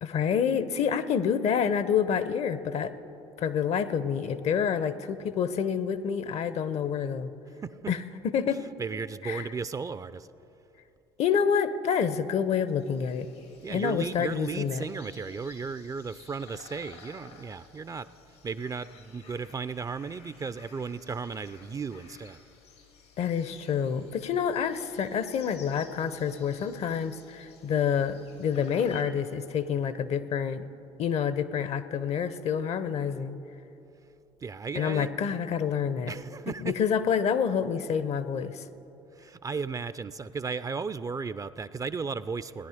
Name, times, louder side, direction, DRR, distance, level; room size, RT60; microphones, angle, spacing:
voice 1, 0.0-2.9 3.4-7.3 7.9-8.0 8.2-8.7 9.2-9.5 11.2-13.3 13.7-14.8 23.2-30.7 31.0-33.4 34.7-36.1 36.6-38.6, left 7 dB, 55° left, 14 dB, 0.7 m, -28 dB
voice 2, 8.8-10.3 13.6-18.1 18.4-22.4 34.4-35.2 36.1-36.7 39.2-42.7, right 5 dB, 25° right, 15 dB, 0.4 m, -35 dB
sound 1, 12.8-29.0, left 6 dB, 85° left, 1.8 m, -54 dB
18.0 x 10.5 x 5.0 m, 3.0 s
hypercardioid pair, 65°, 13 cm